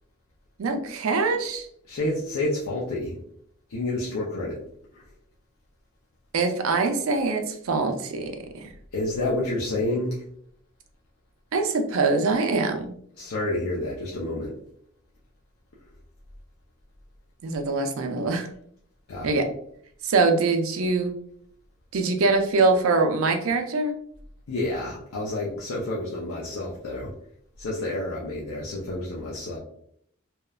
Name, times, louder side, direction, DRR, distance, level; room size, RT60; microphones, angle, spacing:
voice 1, 0.6-1.7 6.3-8.7 11.5-12.9 17.4-18.5 19.2-19.5 20.0-21.1 21.9-23.9, right 3 dB, 70° right, 6 dB, 0.4 m, -23 dB
voice 2, 1.9-3.2 3.7-4.6 4.9-5.0 8.9-10.2 13.2-14.5 19.1-19.3 24.5-27.1 27.6-29.6, left 2 dB, 90° left, -5 dB, 0.5 m, -29 dB
2.9 x 2.1 x 2.3 m, 0.66 s
head